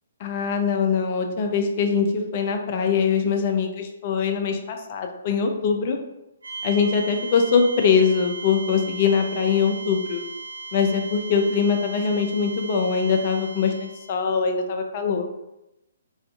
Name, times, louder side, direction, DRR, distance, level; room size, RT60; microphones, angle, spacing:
voice 1, 0.2-6.0 6.6-10.2 10.7-15.3, left 6 dB, 40° left, 4 dB, 0.4 m, -22 dB
sound 1, 6.4-14.1, right 4 dB, 75° right, 0.5 m, -37 dB
2.4 x 2.4 x 2.2 m, 0.90 s
figure-of-eight pair, 130°, 0 cm